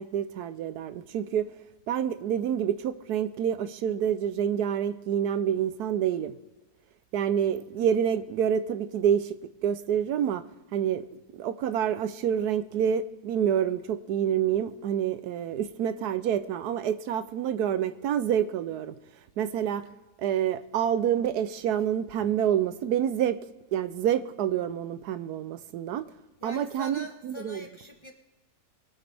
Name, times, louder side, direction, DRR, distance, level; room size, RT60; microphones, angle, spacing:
voice 1, 0.0-1.5 1.9-6.3 7.1-10.4 10.7-11.1 11.4-18.9 19.4-19.8 20.2-23.4 23.7-26.1 26.4-27.6, right 9 dB, 75° right, 13 dB, 1.2 m, -27 dB
voice 2, 26.4-28.1, equal, 20° left, 3 dB, 1.1 m, -43 dB
22.5 x 9.0 x 3.4 m, 1.1 s
omnidirectional pair, 1.7 m